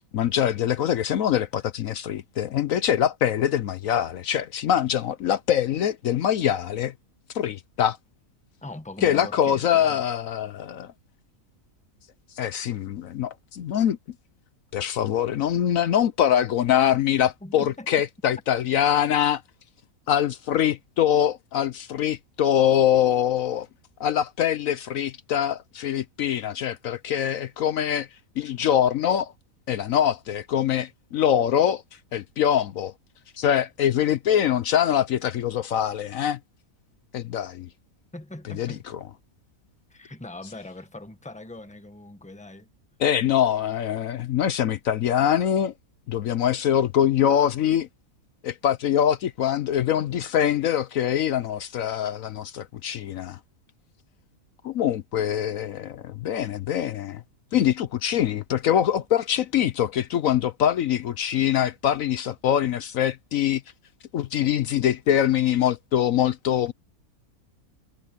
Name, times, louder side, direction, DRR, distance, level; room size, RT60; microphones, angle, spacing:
voice 1, 0.1-6.9 7.3-8.0 9.0-10.9 12.4-14.0 14.7-19.4 20.1-23.7 24.0-28.1 28.4-29.3 29.7-31.8 32.1-32.9 33.4-36.4 37.1-37.7 38.5-39.0 43.0-45.7 46.1-47.9 48.4-53.4 54.6-57.2 57.5-63.6 64.1-66.7, left 10 dB, 70° left, 1.1 m, -23 dB
voice 2, 8.6-10.0 17.4-17.9 38.1-38.8 39.9-42.7, left 2 dB, 5° left, 1.3 m, -41 dB
omnidirectional pair, 1.5 m